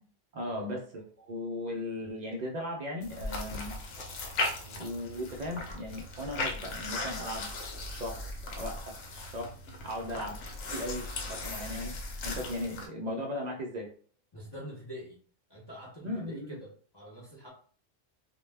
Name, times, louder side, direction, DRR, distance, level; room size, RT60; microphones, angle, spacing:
voice 1, 0.3-3.7 4.8-7.5 7.8-9.5 9.8-10.4 10.7-13.9 16.0-16.6, left 1 dB, 65° right, 1 dB, 0.4 m, -37 dB
sound 1, 3.0-12.9, left 2 dB, 75° left, 0.9 m, -38 dB
voice 2, 4.6-4.9 10.1-10.2 14.3-15.2 15.5-17.5, equal, 35° left, -5 dB, 0.4 m, -46 dB
2.1 x 2.1 x 3.2 m, 0.44 s
omnidirectional pair, 1.3 m